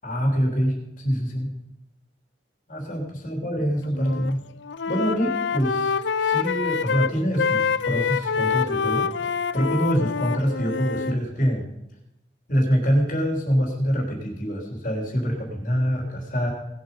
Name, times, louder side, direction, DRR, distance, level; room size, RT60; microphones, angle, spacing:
voice 1, 0.0-1.5 2.7-4.4 4.9-11.7 12.5-16.5, equal, 45° left, 0 dB, 3.4 m, -25 dB
Wind instrument woodwind instrument, 3.9-4.3 4.6-11.2, left 6 dB, 75° left, 0.5 m, -26 dB
19.0 x 7.8 x 5.5 m, 0.89 s
head